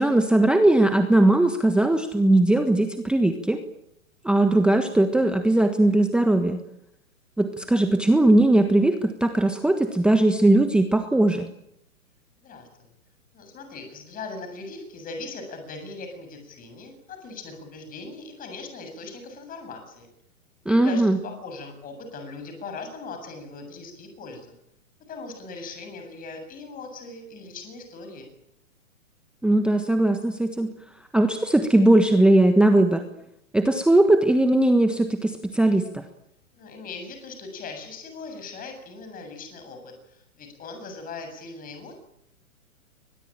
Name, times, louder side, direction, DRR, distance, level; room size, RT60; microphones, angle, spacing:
voice 1, 0.0-3.6 4.2-6.6 7.4-11.5 20.6-21.2 29.4-30.7 31.1-33.0 33.5-36.0, right 1 dB, ahead, 7 dB, 1.3 m, -19 dB
voice 2, 12.4-12.9 13.3-20.1 20.7-24.5 25.1-28.3 36.5-42.0, left 3 dB, 20° left, 6 dB, 7.6 m, -39 dB
24.0 x 21.0 x 9.0 m, 0.77 s
hypercardioid pair, 135°, 41 cm